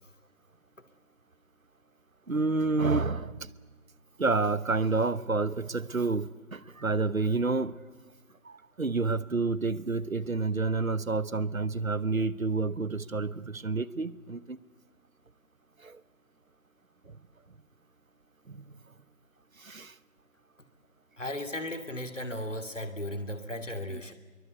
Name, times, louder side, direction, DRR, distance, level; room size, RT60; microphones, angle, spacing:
voice 1, 2.3-3.5 4.2-7.7 8.4-14.6 15.8-16.0 18.5-18.6 19.6-19.9, right 3 dB, 80° right, 18 dB, 1.1 m, -29 dB
voice 2, 21.2-24.1, left 1 dB, 65° left, 8 dB, 2.6 m, -36 dB
23.5 x 23.0 x 8.2 m, 1.3 s
figure-of-eight pair, 175°, 41 cm